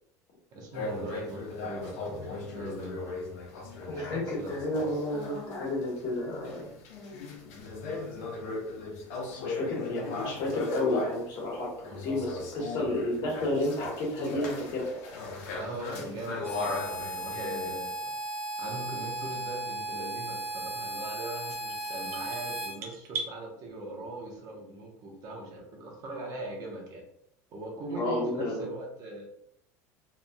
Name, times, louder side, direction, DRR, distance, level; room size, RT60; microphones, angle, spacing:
voice 1, 0.5-3.2 3.9-4.5 15.6-27.1 27.5-29.2, right 2 dB, 50° right, 0 dB, 0.9 m, -40 dB
sound 1, 0.7-11.3 11.8-17.7, left 3 dB, 75° left, 0.8 m, -38 dB
voice 2, 3.9-6.7 9.3-15.1 28.0-28.7, left 1 dB, 55° left, -2 dB, 1.2 m, -31 dB
Harmonica, 16.4-22.8, right 1 dB, 10° left, 0.6 m, -36 dB
sound 2, 21.5-23.4, right 4 dB, 85° right, 0.5 m, -39 dB
3.0 x 2.4 x 2.2 m, 0.71 s
supercardioid pair, 110°, 8 cm